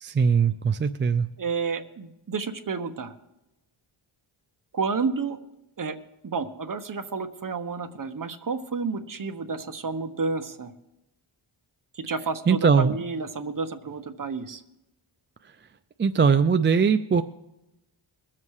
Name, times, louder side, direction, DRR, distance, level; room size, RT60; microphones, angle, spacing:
voice 1, 0.0-1.3 12.5-12.9 16.0-17.2, right 6 dB, 25° right, 9 dB, 0.4 m, -20 dB
voice 2, 1.4-3.1 4.7-5.4 5.8-6.0 6.2-10.7 11.9-14.6, right 4 dB, 40° right, 8 dB, 1.2 m, -30 dB
21.5 x 7.5 x 4.8 m, 0.91 s
cardioid pair, 90°, 49 cm